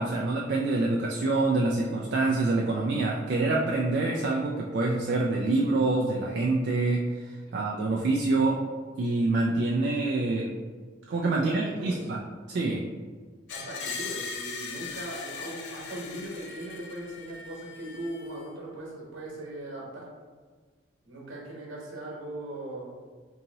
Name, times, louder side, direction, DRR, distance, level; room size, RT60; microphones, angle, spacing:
voice 1, 0.0-8.6 9.0-10.5 11.1-12.2 12.5-12.8, right 2 dB, 60° right, -2 dB, 0.3 m, -26 dB
voice 2, 11.3-12.0 13.5-20.1 21.0-22.9, right 1 dB, 80° right, -3 dB, 1.1 m, -39 dB
Screech, 13.5-18.5, left 4 dB, 60° left, 0.4 m, -39 dB
3.8 x 2.8 x 2.7 m, 1.5 s
head